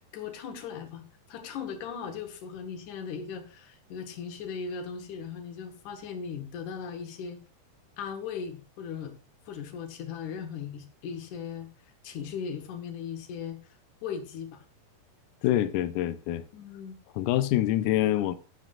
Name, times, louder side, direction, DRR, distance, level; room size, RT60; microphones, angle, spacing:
voice 1, 0.1-7.4 8.0-9.1 9.5-11.7 12.0-13.6 14.0-14.6 16.5-17.0, left 6 dB, 65° left, 2.6 m, -38 dB
voice 2, 15.4-16.4 17.2-18.3, left 13 dB, 85° left, 1.8 m, -25 dB
15.5 x 7.3 x 2.5 m
omnidirectional pair, 4.2 m